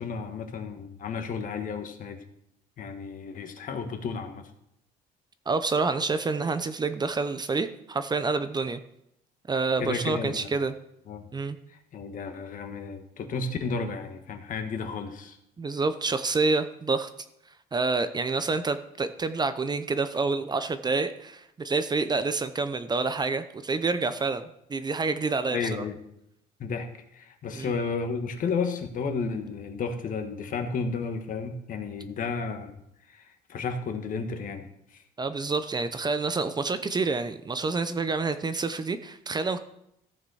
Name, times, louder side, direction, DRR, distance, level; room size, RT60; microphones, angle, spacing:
voice 1, 0.0-2.2 2.8-4.4 9.8-10.5 11.1-11.3 11.9-15.4 25.5-26.0 26.6-26.9 27.2-32.7 33.1-33.2 33.5-34.7, left 5 dB, 50° left, 6 dB, 1.5 m, -32 dB
voice 2, 5.5-8.8 9.5-10.8 11.3-11.6 15.6-17.1 17.7-25.7 27.5-27.7 35.2-39.6, right 4 dB, 25° right, 11 dB, 0.7 m, -28 dB
14.5 x 6.6 x 4.8 m, 0.77 s
cardioid pair, 110°, 17 cm